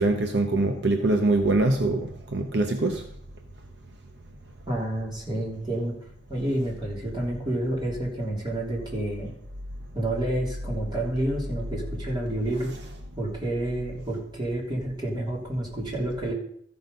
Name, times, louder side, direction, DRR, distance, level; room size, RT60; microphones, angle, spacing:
voice 1, 0.0-3.0, right 2 dB, 60° right, 5 dB, 0.8 m, -23 dB
voice 2, 4.7-5.9 6.3-9.3 9.9-12.7 13.2-16.3, right 1 dB, 25° right, -3 dB, 3.3 m, -29 dB
14.0 x 5.9 x 5.3 m, 0.67 s
head